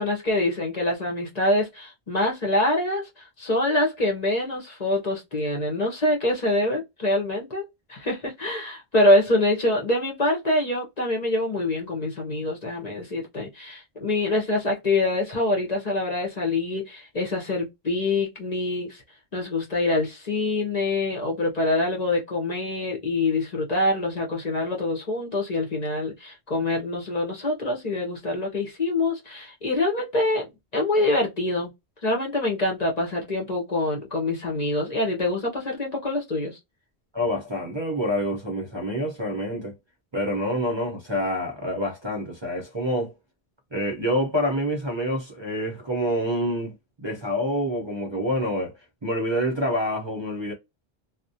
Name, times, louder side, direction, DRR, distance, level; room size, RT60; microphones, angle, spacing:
voice 1, 0.0-7.6 7.9-19.0 19.3-30.5 30.7-31.7 32.0-36.6, left 2 dB, 45° left, 0.8 m, -25 dB
voice 2, 37.1-39.7 40.1-43.1 43.7-48.7 49.0-50.5, equal, 30° right, 0.6 m, -27 dB
2.3 x 2.1 x 2.6 m
omnidirectional pair, 1.0 m